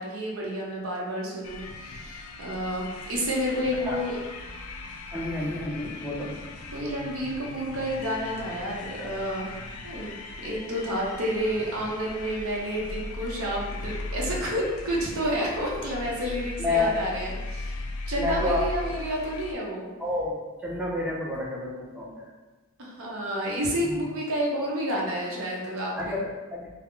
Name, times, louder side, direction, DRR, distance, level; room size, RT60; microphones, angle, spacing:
voice 1, 0.0-4.2 6.7-9.5 9.8-10.2 10.4-19.9 22.8-26.2, equal, 80° right, -2 dB, 0.6 m, -30 dB
sound 1, 1.4-19.5, left 2 dB, 85° left, 0.4 m, -38 dB
voice 2, 5.1-6.3 16.6-17.0 18.1-19.0 20.0-22.3 23.8-24.0 26.0-26.7, left 2 dB, 5° right, -4 dB, 0.4 m, -29 dB
2.3 x 2.0 x 3.6 m, 1.2 s
head